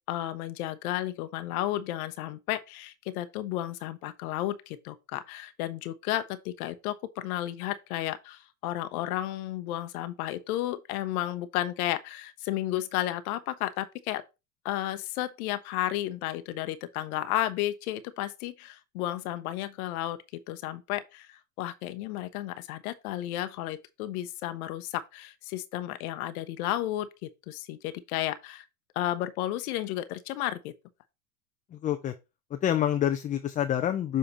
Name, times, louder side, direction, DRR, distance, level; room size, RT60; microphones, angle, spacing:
voice 1, 0.1-14.2 14.6-20.2 20.5-28.6 29.0-30.7, left 14 dB, 60° left, 0.8 m, -33 dB
voice 2, 31.7-32.1 32.5-34.2, left 10 dB, 20° left, 0.4 m, -27 dB
7.2 x 3.8 x 4.1 m
hypercardioid pair, 80°, 49 cm